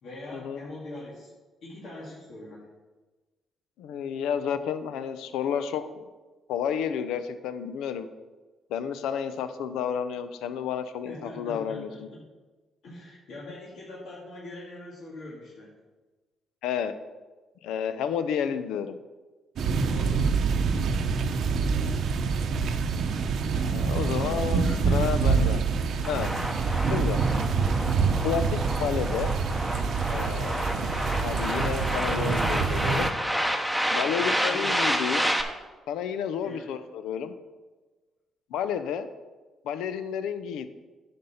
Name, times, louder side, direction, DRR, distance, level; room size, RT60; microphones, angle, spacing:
voice 1, 0.0-1.3 1.6-2.7 11.0-12.2 12.8-15.7 19.8-20.2 20.6-20.9 24.5-25.2 34.1-34.9 36.4-36.7, left 2 dB, 70° left, -5 dB, 2.0 m, -42 dB
voice 2, 3.8-5.9 6.5-8.1 8.7-11.9 16.6-16.9 17.6-19.0 23.5-25.6 26.0-26.3 26.9-27.2 28.2-29.3 30.1-30.6 31.2-33.1 33.9-35.4 35.9-37.3 38.5-39.1 39.6-40.7, left 8 dB, 90° left, 11 dB, 0.6 m, -31 dB
sound 1, 19.6-33.1, right 5 dB, 70° right, 0.7 m, -26 dB
sound 2, 26.0-35.4, equal, ahead, 1.0 m, -29 dB
9.4 x 5.2 x 5.7 m, 1.2 s
cardioid pair, 90°, 0 cm